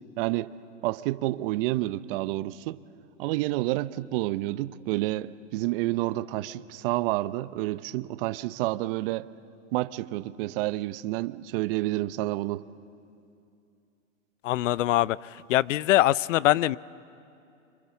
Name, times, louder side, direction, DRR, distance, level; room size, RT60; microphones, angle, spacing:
voice 1, 0.2-0.5 0.8-2.8 3.2-9.3 9.7-12.6, right 17 dB, 45° right, 16 dB, 0.7 m, -29 dB
voice 2, 14.4-15.2 15.5-16.8, left 15 dB, 70° left, 21 dB, 0.6 m, -22 dB
27.5 x 24.0 x 7.2 m, 2.5 s
hypercardioid pair, 125°, 40 cm